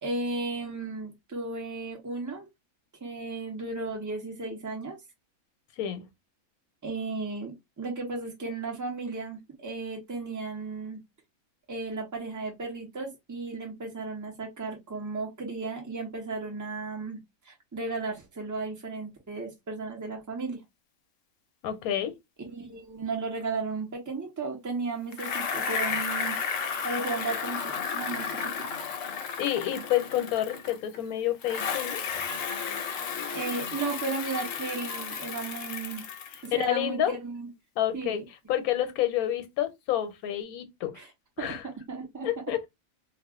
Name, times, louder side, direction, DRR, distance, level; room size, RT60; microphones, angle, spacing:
voice 1, 0.0-2.5 3.0-5.0 6.8-11.0 11.7-17.2 17.5-20.6 22.5-26.4 26.8-28.5 33.3-36.0 36.4-37.5 37.9-38.2 41.0-41.1 41.4-41.6 41.9-42.3, right 3 dB, 15° right, 0.6 m, -34 dB
voice 2, 21.6-22.1 29.4-32.3 36.5-37.1 37.8-38.2 38.5-41.0 41.4-41.6 42.2-42.7, left 12 dB, 90° left, 1.1 m, -29 dB
Bicycle, 25.1-31.0 31.4-36.6, left 6 dB, 70° left, 0.9 m, -33 dB
2.4 x 2.3 x 3.5 m
omnidirectional pair, 1.5 m